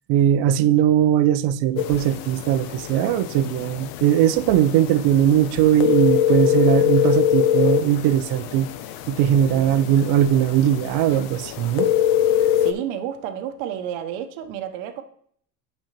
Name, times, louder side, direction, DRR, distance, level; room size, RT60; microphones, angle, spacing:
voice 1, 0.1-8.7 9.1-11.9, right 10 dB, 50° right, 0.5 m, -19 dB
sound 1, 1.8-12.7, left 11 dB, 65° left, 0.7 m, -24 dB
voice 2, 9.5-10.0 12.6-15.0, right 9 dB, 70° right, 0.9 m, -31 dB
8.9 x 5.3 x 3.0 m
hypercardioid pair, 85°, 48 cm